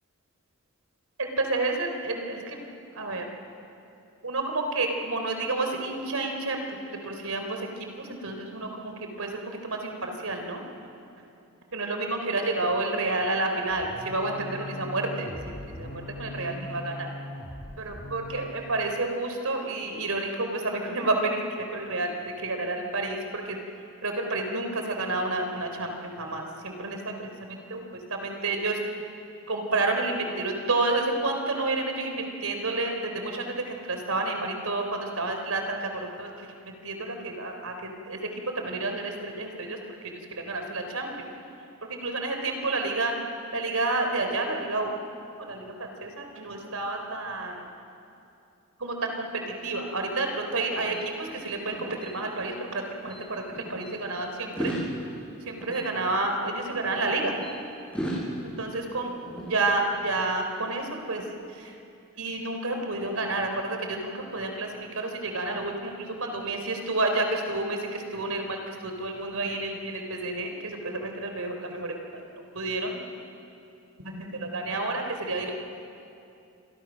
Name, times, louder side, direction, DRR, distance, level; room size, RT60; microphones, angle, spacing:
voice 1, 1.2-2.6 2.9-3.3 4.2-10.6 11.7-15.3 15.8-17.1 17.8-23.6 24.0-28.8 29.5-38.3 38.6-41.3 41.8-43.2 43.5-45.0 45.4-47.7 48.8-54.7 55.5-57.4 58.4-59.1 59.5-61.8 62.2-73.0 74.0-75.5, right 2 dB, 85° right, 4 dB, 3.8 m, -30 dB
sound 1, 13.7-18.6, left 1 dB, 50° left, 3.5 m, -40 dB
sound 2, 49.9-52.8 53.1-53.9 54.4-57.5 57.9-60.2, right 1 dB, 5° left, 7.4 m, -38 dB
28.0 x 24.0 x 6.4 m, 2.6 s
head